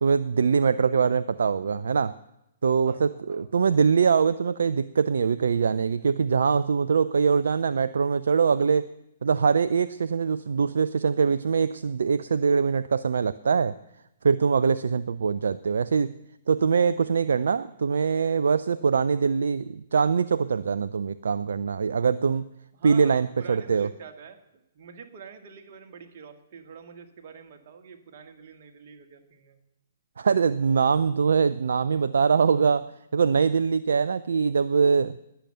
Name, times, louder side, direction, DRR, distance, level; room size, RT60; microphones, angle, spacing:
voice 1, 0.0-2.1 2.6-8.9 9.2-13.8 14.2-16.1 16.5-22.5 22.8-23.9 30.2-32.9 33.1-35.1, right 5 dB, 60° right, 15 dB, 0.4 m, -23 dB
voice 2, 2.9-3.5 22.3-22.4 22.7-29.6, right 6 dB, 40° right, 5 dB, 1.7 m, -47 dB
20.0 x 7.0 x 7.7 m, 0.86 s
figure-of-eight pair, 120°, 0 cm